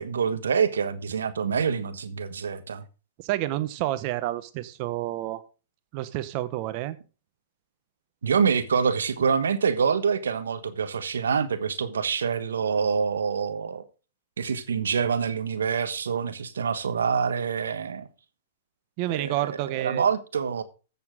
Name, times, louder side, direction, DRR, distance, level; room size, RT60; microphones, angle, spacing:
voice 1, 0.0-2.8 8.2-13.8 14.4-18.1 19.1-20.6, right 6 dB, 85° right, 1.2 m, -26 dB
voice 2, 3.2-5.4 5.9-7.0 19.0-20.1, right 15 dB, 45° right, 1.1 m, -29 dB
14.0 x 7.1 x 3.7 m
hypercardioid pair, 120°, 0 cm